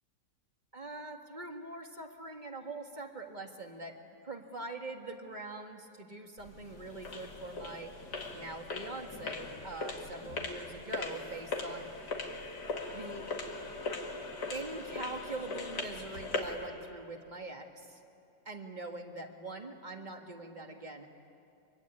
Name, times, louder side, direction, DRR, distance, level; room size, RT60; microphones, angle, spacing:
voice 1, 0.7-12.1 12.9-13.3 14.5-18.0 18.5-21.1, right 2 dB, 25° right, 4 dB, 1.8 m, -43 dB
sound 1, 6.4-16.6, left 3 dB, 70° left, 2.7 m, -40 dB
24.5 x 24.0 x 9.6 m, 2.6 s
omnidirectional pair, 1.8 m